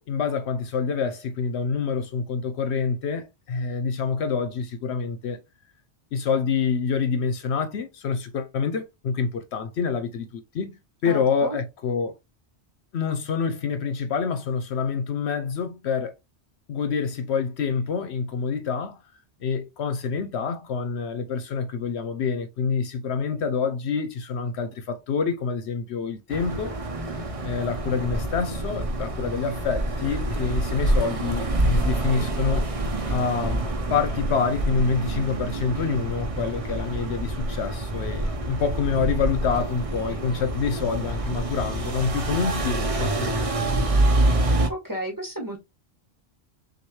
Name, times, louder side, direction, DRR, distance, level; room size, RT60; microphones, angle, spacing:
voice 1, 0.0-5.4 6.1-10.8 11.0-12.1 12.9-16.1 16.7-19.0 19.4-26.7 27.4-32.7 33.1-43.6, left 5 dB, 70° left, 0.9 m, -27 dB
voice 2, 11.1-11.6 44.7-45.6, right 1 dB, 15° right, 1.8 m, -32 dB
sound 1, 26.3-44.7, right 1 dB, 35° right, 0.8 m, -26 dB
6.2 x 2.5 x 3.0 m
omnidirectional pair, 1.2 m